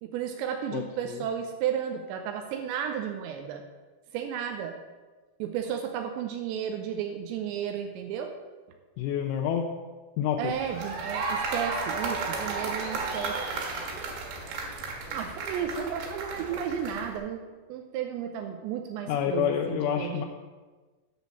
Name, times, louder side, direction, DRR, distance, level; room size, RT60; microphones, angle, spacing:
voice 1, 0.0-3.6 4.1-4.8 5.4-8.3 10.4-13.4 15.1-17.4 17.7-20.2, right 8 dB, 90° right, 4 dB, 2.6 m, -33 dB
voice 2, 9.0-9.7 10.2-10.5 19.1-20.2, left 9 dB, 80° left, 1 dB, 2.9 m, -28 dB
sound 1, 10.5-17.2, right 4 dB, 70° right, 3.6 m, -33 dB
10.0 x 5.3 x 6.9 m, 1.3 s
omnidirectional pair, 5.8 m